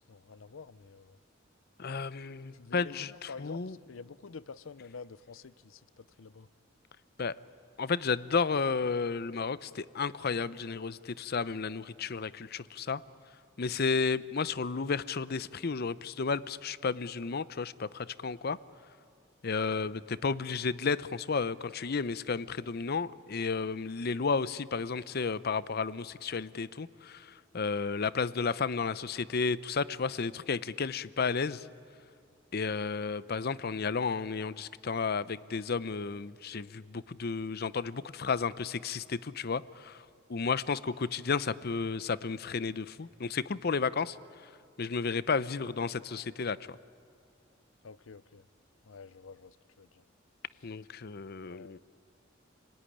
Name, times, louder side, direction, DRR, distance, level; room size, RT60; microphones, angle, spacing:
voice 1, 0.1-1.2 2.5-6.5 19.7-19.9 47.8-48.4 48.9-50.0 51.4-51.8, left 5 dB, 90° left, 0.6 m, -48 dB
voice 2, 1.8-3.8 7.2-7.3 7.8-13.0 13.6-18.6 19.4-31.6 32.5-40.0 40.3-44.2 44.8-46.8 50.6-51.8, left 5 dB, 50° left, 0.6 m, -32 dB
29.0 x 19.5 x 10.0 m
head